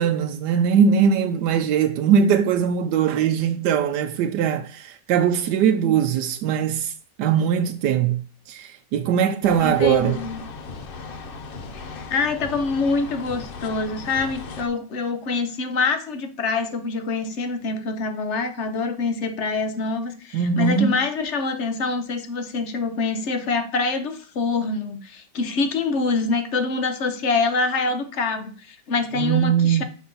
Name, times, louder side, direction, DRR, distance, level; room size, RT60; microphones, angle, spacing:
voice 1, 0.0-6.9 7.2-10.2 20.3-21.0 29.1-29.8, right 7 dB, 75° right, 1.2 m, -21 dB
sound 1, 9.4-14.7, left 4 dB, 80° left, 0.5 m, -37 dB
voice 2, 9.6-10.4 11.7-29.8, left 4 dB, 50° left, 1.0 m, -25 dB
6.2 x 5.2 x 3.9 m
omnidirectional pair, 1.9 m